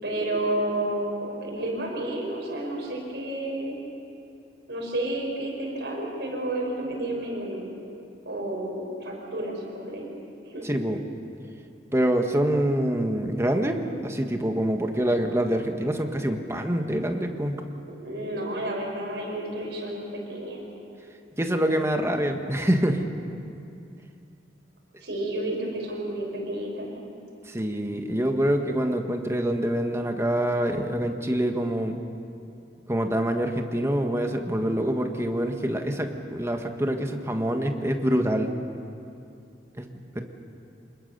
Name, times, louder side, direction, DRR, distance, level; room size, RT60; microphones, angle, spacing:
voice 1, 0.0-3.8 4.7-7.8 8.2-10.1 10.4-10.6 17.9-20.6 25.0-26.9, right 1 dB, 75° right, -1 dB, 6.0 m, -31 dB
voice 2, 10.6-11.0 11.9-17.6 21.4-23.0 27.5-32.0 32.9-38.5 39.8-40.2, right 1 dB, 15° right, 4 dB, 1.6 m, -25 dB
26.0 x 21.0 x 6.8 m, 2.6 s
head